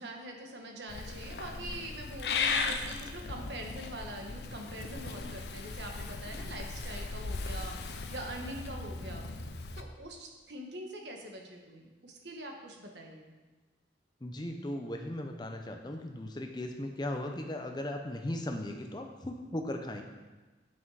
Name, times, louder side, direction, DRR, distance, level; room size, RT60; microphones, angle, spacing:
voice 1, 0.0-9.3 9.8-13.3, right 1 dB, 70° right, 2 dB, 1.3 m, -44 dB
Purr / Meow, 0.9-9.8, left 4 dB, 65° left, 0.6 m, -37 dB
voice 2, 14.2-20.0, left 1 dB, 25° left, 3 dB, 0.7 m, -37 dB
7.4 x 6.0 x 4.8 m, 1.2 s
head